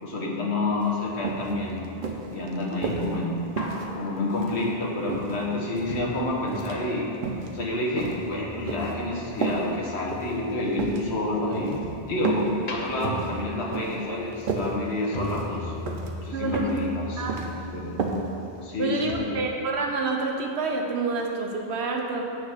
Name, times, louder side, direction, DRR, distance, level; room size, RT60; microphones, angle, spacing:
voice 1, 0.0-1.8 2.3-3.4 3.9-7.1 7.5-11.8 12.1-15.8 16.2-17.9 18.6-19.4, left 2 dB, 90° left, -3 dB, 1.5 m, -29 dB
sound 1, 0.8-0.9 1.2-1.5 2.0-3.1 3.6-4.6 5.1-6.0 6.5-6.8 7.1-7.5 8.0-8.9 9.4-9.6 10.1-10.3 10.7-11.0 11.5-11.8 12.2-12.5 12.8-13.3 13.7-14.0 14.3-14.7 15.2-15.5 15.9-16.1 16.5-16.8 17.1-17.5 18.0-18.2 18.6-18.7, right 4 dB, 55° right, 0.9 m, -31 dB
sound 2, 1.0-7.0 7.3-12.1 12.5-18.8 19.1-19.2, left 2 dB, 45° left, 0.8 m, -41 dB
voice 2, 16.3-16.8 17.2-17.4 18.8-22.2, right 3 dB, 85° right, 1 dB, 1.0 m, -28 dB
8.6 x 3.5 x 6.5 m, 2.8 s
omnidirectional pair, 1.1 m